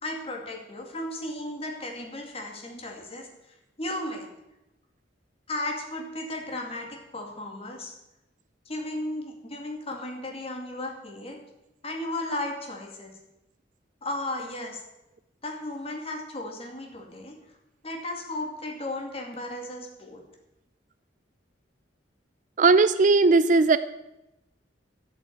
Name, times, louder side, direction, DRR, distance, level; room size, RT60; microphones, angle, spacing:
voice 1, 0.0-3.3 3.8-4.3 5.5-7.9 8.7-11.4 11.8-13.1 14.0-14.8 15.4-17.4 17.8-20.2, left 1 dB, 30° left, 2 dB, 2.4 m, -35 dB
voice 2, 22.6-23.8, right 3 dB, 40° right, 13 dB, 0.4 m, -18 dB
13.0 x 6.4 x 8.7 m, 0.93 s
head